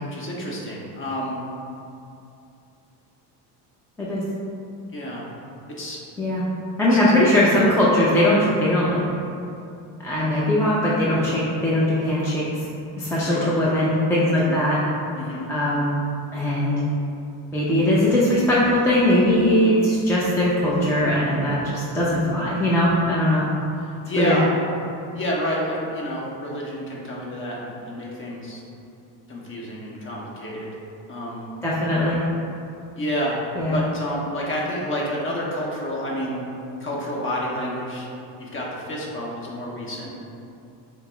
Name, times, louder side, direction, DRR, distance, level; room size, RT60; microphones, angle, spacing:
voice 1, 0.0-1.4 4.9-5.3 5.8-6.0 6.9-7.0 13.2-13.6 14.3-14.6 15.2-15.5 23.8-24.5 25.1-28.6 29.3-30.7 31.1-31.5 33.0-33.4 33.7-36.4 36.8-38.1 38.4-40.1, equal, 25° left, -4 dB, 0.9 m, -29 dB
voice 2, 6.8-9.0 10.0-12.5 13.0-14.8 15.5-16.0 16.3-16.8 17.5-23.4 24.2-24.3 31.6-32.2 33.6-33.8, left 1 dB, 5° left, -8 dB, 0.4 m, -20 dB
5.6 x 2.0 x 4.3 m, 2.7 s
cardioid pair, 130°, 45 cm